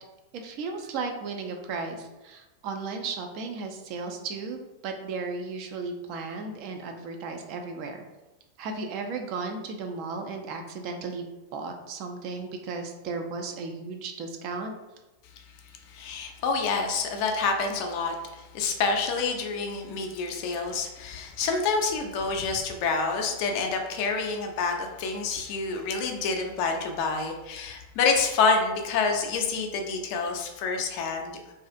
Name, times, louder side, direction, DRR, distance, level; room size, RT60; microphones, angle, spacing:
voice 1, 0.3-4.6 4.8-8.0 8.6-11.3 11.5-14.7, right 4 dB, 40° right, 4 dB, 0.3 m, -35 dB
voice 2, 15.8-31.4, left 4 dB, 45° left, 3 dB, 0.4 m, -28 dB
2.4 x 2.3 x 2.4 m, 1.1 s
figure-of-eight pair, 90°, 0 cm